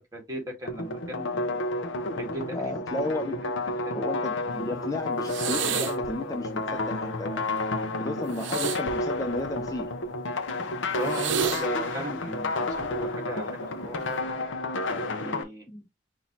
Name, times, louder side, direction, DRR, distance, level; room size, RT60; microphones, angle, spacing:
voice 1, 0.0-1.6 2.1-2.7 3.8-4.0 10.9-14.0 14.9-15.7, right 1 dB, 15° right, 2.0 m, -37 dB
sound 1, 0.7-15.4, left 2 dB, 80° left, 0.9 m, -31 dB
voice 2, 2.5-3.4 3.7-7.7 8.0-9.9 15.7-15.8, left 2 dB, 20° left, 0.3 m, -33 dB
sound 2, 5.2-6.1 8.3-9.8 11.0-11.7 12.7-13.1, right 7 dB, 75° right, 0.7 m, -31 dB
5.6 x 2.8 x 3.0 m
head